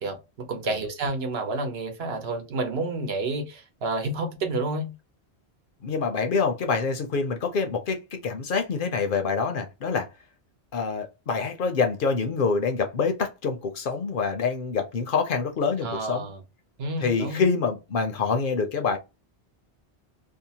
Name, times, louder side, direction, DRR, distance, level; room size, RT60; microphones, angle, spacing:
voice 1, 0.0-4.9 15.8-16.4 16.8-17.4, right 2 dB, 70° right, 0.9 m, -30 dB
voice 2, 5.8-10.1 10.7-16.3 17.0-19.0, left 5 dB, 60° left, 0.7 m, -26 dB
2.7 x 2.0 x 2.7 m
omnidirectional pair, 1.1 m